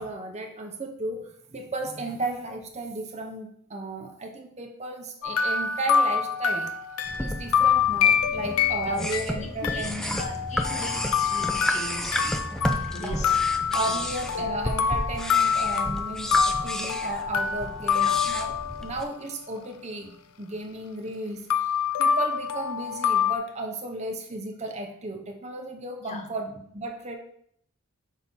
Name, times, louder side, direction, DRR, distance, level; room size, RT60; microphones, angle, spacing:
voice 1, 0.0-6.7 7.2-10.2 12.9-13.4 13.7-18.5 18.8-21.7 22.0-27.2, right 2 dB, 30° right, 4 dB, 0.7 m, -34 dB
sound 1, 5.2-19.0 21.5-23.4, left 7 dB, 85° left, 0.5 m, -26 dB
sound 2, 7.0-19.0, equal, 5° left, 0.3 m, -32 dB
voice 2, 9.3-12.5 12.9-13.4 13.7-14.0 14.4-14.5 18.0-18.2 26.0-26.3, left 1 dB, 35° left, 4 dB, 0.7 m, -40 dB
6.3 x 2.8 x 5.4 m, 0.66 s
head